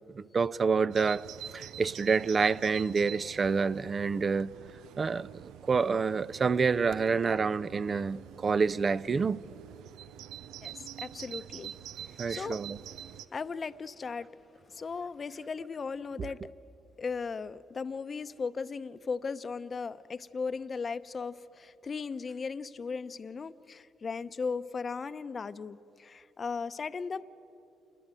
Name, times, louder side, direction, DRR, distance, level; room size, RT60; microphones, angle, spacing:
voice 1, 0.1-1.3 1.5-4.5 5.0-9.4 12.2-12.8 16.2-16.3, right 5 dB, 40° right, 0.5 m, -28 dB
Bird vocalization bird call bird song, 0.9-13.3, right 11 dB, 90° right, 0.5 m, -46 dB
voice 2, 10.6-12.6 13.3-14.3 14.7-16.4 17.0-27.2, left 5 dB, 40° left, 0.8 m, -37 dB
27.5 x 21.0 x 9.0 m
cardioid pair, 90°, 0 cm